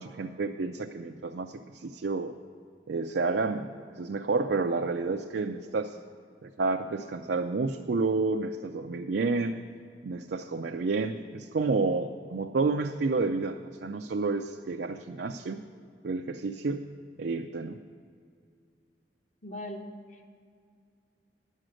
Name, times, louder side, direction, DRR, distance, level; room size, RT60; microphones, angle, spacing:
voice 1, 0.0-2.3 2.9-3.7 3.9-6.0 6.4-9.6 10.0-15.6 16.0-16.8 17.2-17.8, right 3 dB, 70° right, 4 dB, 0.4 m, -30 dB
voice 2, 19.4-20.4, left 1 dB, 40° left, 3 dB, 1.1 m, -41 dB
10.5 x 6.4 x 7.6 m, 2.3 s
head